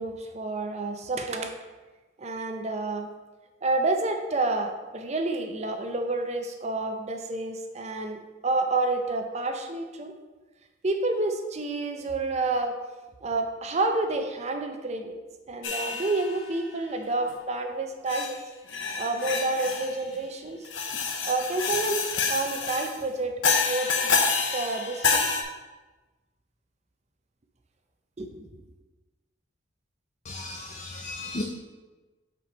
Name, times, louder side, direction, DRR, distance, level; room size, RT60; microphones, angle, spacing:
voice 1, 0.0-1.5 2.2-3.1 3.6-10.1 10.8-12.7 13.2-15.1 15.5-18.4 19.0-20.6 21.2-25.3 28.2-28.5, right 2 dB, 35° right, 5 dB, 0.5 m, -29 dB
sound 1, 15.6-16.5 17.3-17.4 18.1-18.3 18.7-20.0 20.6-23.0 23.4-25.4, left 5 dB, 90° left, 0.7 m, -28 dB
voice 2, 30.3-31.4, left 2 dB, 40° left, 1 dB, 0.5 m, -35 dB
5.9 x 4.5 x 4.0 m, 1.2 s
head